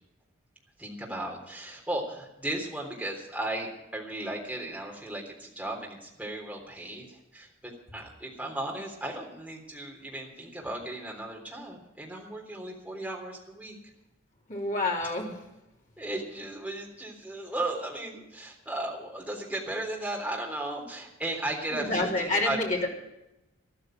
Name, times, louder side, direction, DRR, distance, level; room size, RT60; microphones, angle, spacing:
voice 1, 0.8-13.9 16.0-22.6, right 1 dB, 5° right, -1 dB, 3.5 m, -36 dB
voice 2, 14.5-15.3 21.7-22.9, left 2 dB, 40° left, -2 dB, 3.5 m, -28 dB
13.5 x 13.5 x 6.3 m, 0.90 s
head